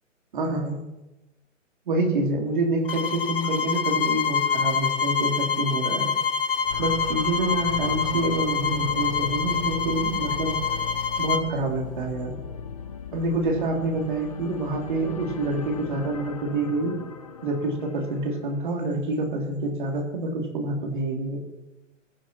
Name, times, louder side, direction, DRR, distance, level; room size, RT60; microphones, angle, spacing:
voice 1, 0.3-0.8 1.9-6.1 6.8-10.5 11.2-12.4 13.1-16.9 17.4-21.4, right 2 dB, 40° right, 1 dB, 3.2 m, -27 dB
sound 1, 2.9-11.5, left 6 dB, 45° left, 1.4 m, -26 dB
sound 2, 6.6-18.6, left 6 dB, 30° left, 0.8 m, -37 dB
22.0 x 7.3 x 4.4 m, 1.0 s
hypercardioid pair, 175°, 39 cm